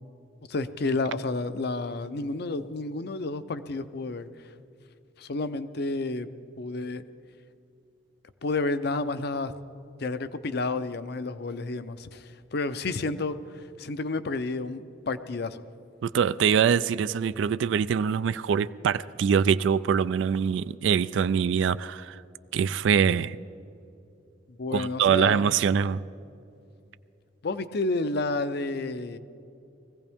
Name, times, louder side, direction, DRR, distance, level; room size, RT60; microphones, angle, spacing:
voice 1, 0.5-4.5 5.2-6.3 6.6-7.0 8.4-9.5 10.0-15.6 24.5-25.4 27.4-29.2, left 3 dB, 55° left, 0.6 m, -30 dB
voice 2, 16.0-22.2 22.5-23.4 24.7-26.0, right 7 dB, 75° right, 0.3 m, -24 dB
21.0 x 15.5 x 3.5 m
head